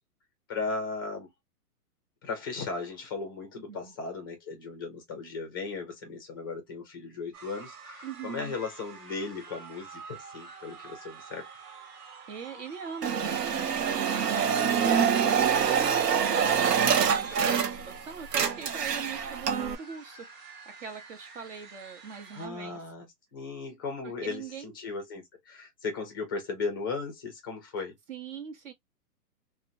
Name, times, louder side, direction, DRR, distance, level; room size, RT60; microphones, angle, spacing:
voice 1, 0.5-1.3 2.2-11.5 15.3-15.7 22.3-27.9, left 4 dB, 15° left, 0.4 m, -37 dB
voice 2, 3.6-3.9 8.0-8.6 12.3-22.8 24.0-24.7 28.1-28.7, right 7 dB, 50° right, 0.8 m, -42 dB
sound 1, 7.3-22.5, right 5 dB, 70° right, 1.3 m, -48 dB
sound 2, 13.0-18.0 18.2-19.8, right 7 dB, 85° right, 0.7 m, -25 dB
2.8 x 2.1 x 2.6 m
hypercardioid pair, 140°, 47 cm